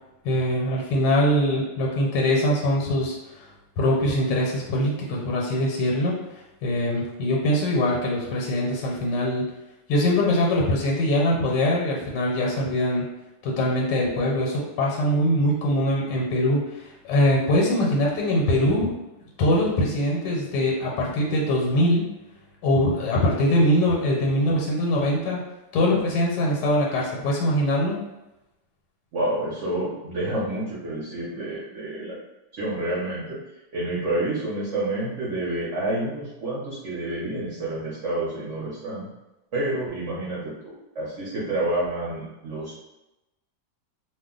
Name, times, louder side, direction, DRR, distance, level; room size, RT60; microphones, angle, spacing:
voice 1, 0.2-3.5 3.8-6.1 6.6-9.5 9.9-13.1 13.4-18.9 19.4-22.1 22.6-25.4 25.7-28.0, left 1 dB, 85° left, -2 dB, 1.3 m, -22 dB
voice 2, 29.1-32.2 32.5-33.4 33.7-39.1 39.5-42.8, right 1 dB, 55° right, -7 dB, 0.9 m, -29 dB
2.8 x 2.2 x 3.7 m, 0.97 s
omnidirectional pair, 1.8 m